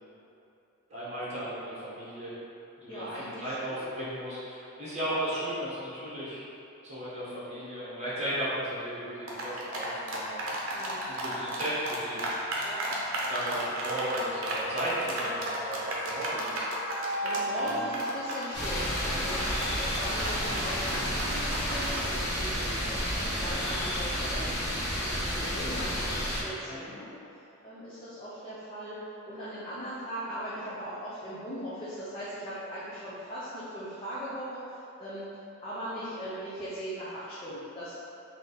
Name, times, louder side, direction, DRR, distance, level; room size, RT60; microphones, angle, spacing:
voice 1, 0.9-2.3 2.8-6.4 6.8-10.7 11.1-12.6 13.3-16.7 17.6-18.0 26.6-26.8, right 1 dB, 30° right, -10 dB, 1.4 m, -35 dB
voice 2, 2.9-3.8 10.7-11.1 12.6-12.9 14.9-15.1 17.2-24.5 25.0-27.1 27.6-29.0 29.3-35.3 35.6-37.9, equal, 25° left, -10 dB, 0.6 m, -39 dB
sound 1, 9.3-22.1, right 1 dB, 65° right, 0.7 m, -34 dB
Wind instrument woodwind instrument, 13.4-21.1, equal, 85° left, 1.0 m, -38 dB
sound 2, 18.5-26.4, equal, 55° left, 1.1 m, -31 dB
3.8 x 2.8 x 4.0 m, 2.8 s
head